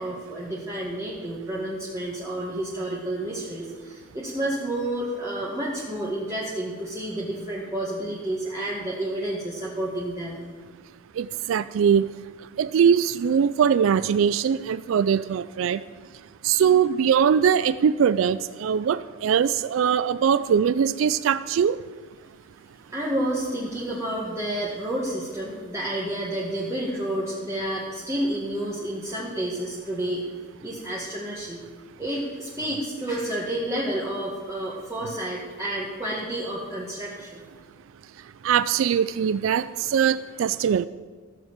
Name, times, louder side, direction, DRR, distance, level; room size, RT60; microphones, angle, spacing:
voice 1, 0.0-10.4 22.9-30.2 30.6-31.6 32.0-37.4, right 1 dB, 15° right, -6 dB, 1.8 m, -30 dB
voice 2, 11.2-12.1 12.6-15.8 16.4-21.8 38.4-40.9, right 7 dB, 70° right, 15 dB, 0.3 m, -21 dB
15.0 x 7.1 x 7.4 m, 1.6 s
head